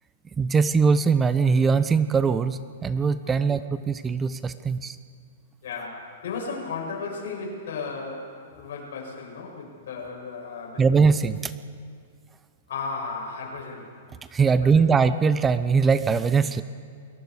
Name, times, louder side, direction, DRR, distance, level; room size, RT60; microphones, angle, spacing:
voice 1, 0.4-5.0 10.8-11.5 14.3-16.6, right 5 dB, 15° right, 13 dB, 0.6 m, -21 dB
voice 2, 5.6-10.9 12.7-13.9 14.4-14.8, left 4 dB, 70° left, -1 dB, 7.9 m, -35 dB
29.5 x 22.0 x 4.9 m, 2.2 s
hypercardioid pair, 150°, 0 cm